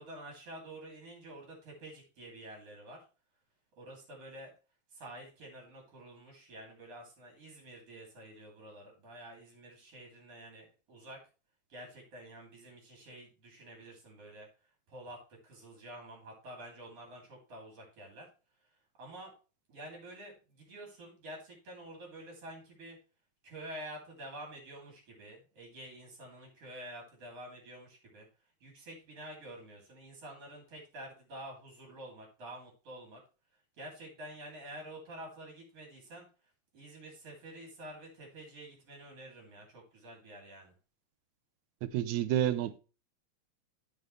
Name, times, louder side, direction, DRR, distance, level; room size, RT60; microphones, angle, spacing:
voice 1, 0.0-3.0 3.8-4.5 4.9-11.2 11.7-14.5 14.9-18.3 19.0-19.3 19.7-23.0 23.4-28.3 28.6-33.2 33.8-36.3 36.7-40.7, right 1 dB, 55° right, 4.1 m, -48 dB
voice 2, 41.8-42.8, right 11 dB, 80° right, 2.1 m, -30 dB
14.0 x 5.4 x 3.3 m
omnidirectional pair, 3.3 m